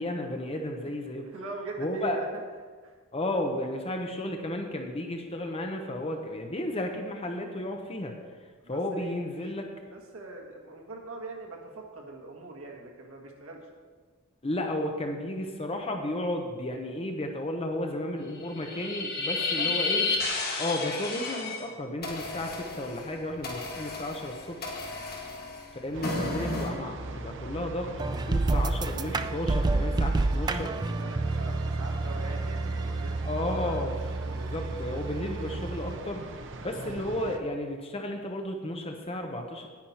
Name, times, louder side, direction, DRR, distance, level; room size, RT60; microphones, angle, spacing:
voice 1, 0.0-1.2 1.8-2.2 3.1-8.2 8.7-9.7 14.4-20.1 20.6-24.7 25.7-30.7 33.2-34.0 34.3-36.3 36.6-39.7, left 1 dB, 30° left, 3 dB, 0.8 m, -33 dB
voice 2, 1.2-2.3 2.8-3.0 8.6-9.5 9.9-13.7 19.3-19.8 25.2-25.5 30.8-33.8, right 2 dB, 80° right, -1 dB, 1.8 m, -42 dB
sound 1, 18.4-21.6 22.0-26.7, left 3 dB, 45° left, 1.8 m, -32 dB
sound 2, 25.9-37.4, right 2 dB, 60° right, 0.7 m, -41 dB
sound 3, 28.0-36.0, right 2 dB, 20° right, 0.3 m, -29 dB
10.5 x 9.5 x 4.3 m, 1.5 s
head